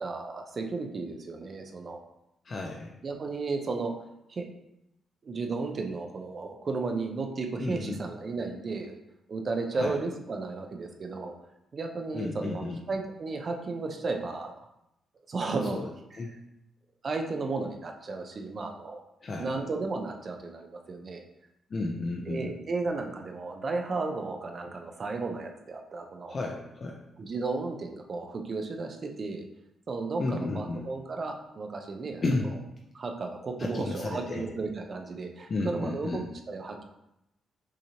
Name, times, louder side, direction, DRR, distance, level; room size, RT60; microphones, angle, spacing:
voice 1, 0.0-2.0 3.0-3.9 4.3-4.5 5.2-9.0 9.3-11.3 11.7-14.6 15.3-15.8 17.0-19.0 19.4-21.2 22.3-26.4 27.2-29.4 29.9-32.2 32.9-36.8, right 3 dB, 35° right, 3 dB, 0.5 m, -34 dB
voice 2, 2.4-2.9 7.6-8.0 9.7-10.0 12.1-12.8 15.7-15.9 16.2-16.3 19.2-19.5 21.7-22.5 26.3-27.0 30.2-30.8 32.2-32.5 33.6-34.4 35.5-36.3, left 2 dB, 35° left, -1 dB, 0.5 m, -32 dB
6.3 x 2.9 x 2.9 m, 0.85 s
cardioid pair, 145°, 0 cm